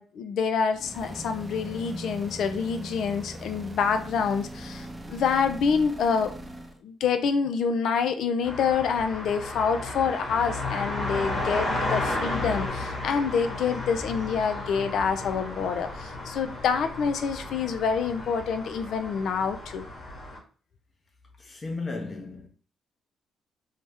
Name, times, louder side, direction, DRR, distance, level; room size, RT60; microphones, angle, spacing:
voice 1, 0.0-6.3 6.8-19.9, left 6 dB, 70° left, 0.4 m, -27 dB
sound 1, 0.7-6.8, right 1 dB, 20° right, 0.5 m, -40 dB
sound 2, 8.4-20.4, left 2 dB, 50° left, 1.2 m, -33 dB
voice 2, 21.4-22.5, left 3 dB, 35° left, 0.7 m, -35 dB
2.7 x 2.1 x 3.4 m
supercardioid pair, 60°, 0 cm